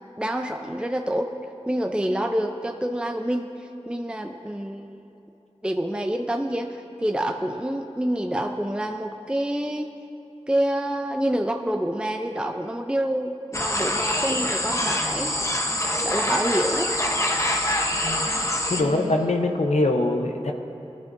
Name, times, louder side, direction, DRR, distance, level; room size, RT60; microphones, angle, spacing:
voice 1, 0.2-1.3 1.7-5.0 5.6-9.9 10.5-15.3 16.0-16.9 18.8-19.3, right 1 dB, 10° right, 4 dB, 0.5 m, -27 dB
sound 1, 13.5-18.8, left 1 dB, 25° left, 0.9 m, -25 dB
voice 2, 18.0-18.4 18.7-20.5, left 2 dB, 85° left, 4 dB, 0.8 m, -23 dB
19.0 x 11.5 x 2.6 m, 2.8 s
wide cardioid pair, 50°, 11 cm